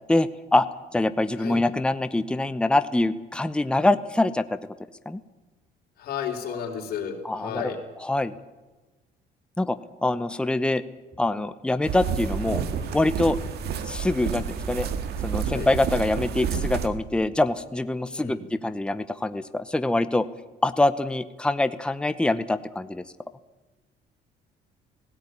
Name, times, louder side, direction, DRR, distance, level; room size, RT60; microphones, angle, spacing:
voice 1, 0.1-0.7 0.9-4.6 5.1-5.2 7.2-7.6 8.0-8.3 9.6-10.8 11.2-12.6 12.9-13.4 13.8-14.9 15.2-20.3 20.6-23.0, left 2 dB, 5° left, 11 dB, 0.8 m, -24 dB
voice 2, 6.0-7.8 15.5-15.7 18.1-18.4, left 8 dB, 65° left, 2 dB, 4.3 m, -33 dB
sound 1, 11.9-16.9, right 7 dB, 75° right, 1.8 m, -29 dB
17.5 x 16.5 x 9.8 m, 1.2 s
cardioid pair, 110°, 17 cm